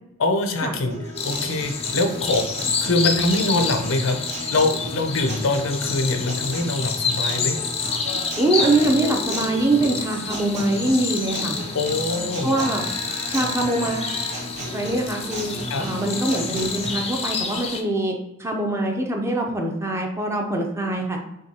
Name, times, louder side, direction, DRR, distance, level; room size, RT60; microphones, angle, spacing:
voice 1, 0.2-2.5 2.8-4.2 4.5-7.6 11.7-12.5 15.7-15.8, left 2 dB, 80° left, 5 dB, 0.6 m, -23 dB
Guitar, 0.9-16.9, right 1 dB, 35° right, 1.0 m, -35 dB
sound 1, 1.2-17.8, left 5 dB, 30° left, 0.5 m, -29 dB
voice 2, 8.4-11.6 12.4-12.8 13.3-14.1 14.7-15.5 15.8-21.2, right 1 dB, 15° right, 1 dB, 0.6 m, -23 dB
6.1 x 2.3 x 2.8 m, 0.90 s
head